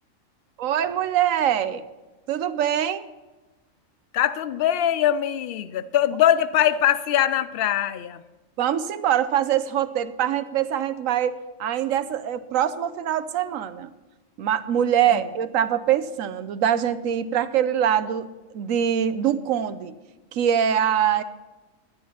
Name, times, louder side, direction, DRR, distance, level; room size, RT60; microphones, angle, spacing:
voice 1, 0.6-1.8 2.3-3.0 8.6-13.9 14.4-18.3 18.5-20.0 20.3-21.2, right 9 dB, 75° right, 1.1 m, -23 dB
voice 2, 4.1-8.2 15.1-15.2, left 11 dB, 60° left, 0.6 m, -22 dB
12.0 x 11.0 x 4.3 m
omnidirectional pair, 1.4 m